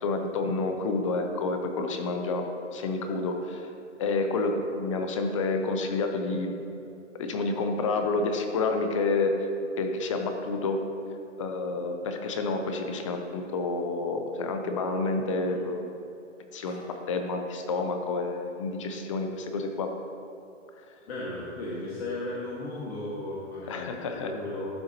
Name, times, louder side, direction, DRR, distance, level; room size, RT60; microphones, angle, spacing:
voice 1, 0.0-2.5 2.7-3.7 4.0-6.5 7.2-9.5 9.8-10.8 11.4-15.8 16.5-16.8 17.1-19.9 23.7-24.3, left 3 dB, 25° left, 5 dB, 0.5 m, -29 dB
voice 2, 21.1-24.7, left 2 dB, 55° left, -6 dB, 1.6 m, -36 dB
11.5 x 6.2 x 2.8 m, 2.6 s
hypercardioid pair, 140°, 38 cm